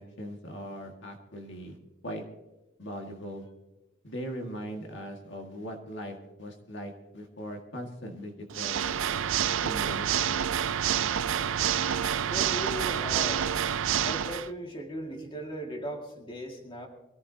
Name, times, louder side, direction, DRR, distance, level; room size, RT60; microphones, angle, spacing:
voice 1, 0.0-1.8 2.0-2.2 2.8-3.4 4.0-9.0 9.6-10.3, equal, 60° left, 2 dB, 1.8 m, -40 dB
Water / Mechanisms, 8.5-14.5, right 9 dB, 80° right, 0.4 m, -28 dB
voice 2, 12.2-13.5 14.0-16.9, equal, 25° left, 1 dB, 2.0 m, -38 dB
23.5 x 14.5 x 2.8 m, 1.0 s
head